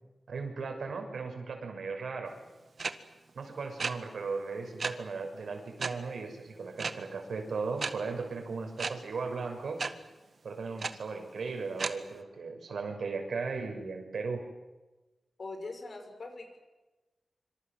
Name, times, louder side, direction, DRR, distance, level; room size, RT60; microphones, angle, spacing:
voice 1, 0.3-2.3 3.3-9.8 10.4-14.4, right 4 dB, 85° right, 4 dB, 6.4 m, -37 dB
sound 1, 2.8-2.9 3.8-3.9 4.8-4.9 5.8-5.9 6.8-6.9 7.8-7.9 8.8-8.9 9.8-9.9 10.8-10.9 11.8-11.9, right 4 dB, 50° right, 1.7 m, -31 dB
voice 2, 15.4-16.6, left 3 dB, 50° left, 6 dB, 6.1 m, -42 dB
26.0 x 26.0 x 7.7 m, 1.1 s
wide cardioid pair, 135°, 0 cm